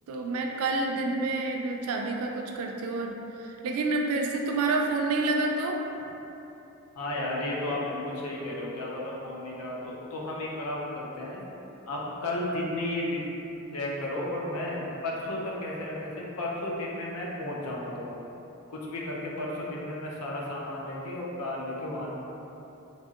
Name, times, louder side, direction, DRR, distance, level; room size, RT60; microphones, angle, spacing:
voice 1, 0.1-5.8, right 3 dB, 75° right, 2 dB, 0.3 m, -28 dB
voice 2, 7.0-11.4 11.9-13.2 13.7-18.2 18.7-22.1, left 1 dB, 85° left, -3 dB, 0.5 m, -33 dB
2.9 x 2.7 x 2.4 m, 3.0 s
head